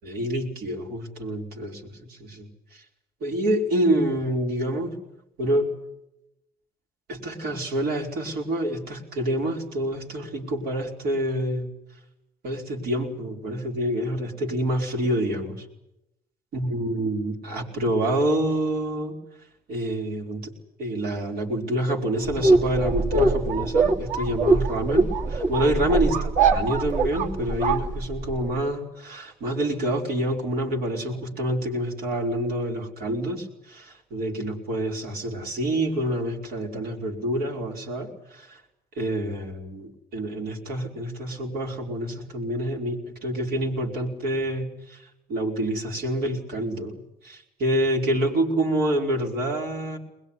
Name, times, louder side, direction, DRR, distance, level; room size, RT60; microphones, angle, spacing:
voice 1, 0.0-1.8 2.1-2.8 3.2-5.0 5.4-5.7 7.1-11.7 12.4-15.6 16.5-19.2 19.7-20.5 20.8-38.6 39.0-45.0 45.3-50.0, right 1 dB, 80° right, 0 dB, 5.0 m, -27 dB
sound 1, 22.2-28.5, right 3 dB, 55° right, 2.9 m, -23 dB
22.0 x 21.0 x 9.9 m, 0.87 s
cardioid pair, 95°, 16 cm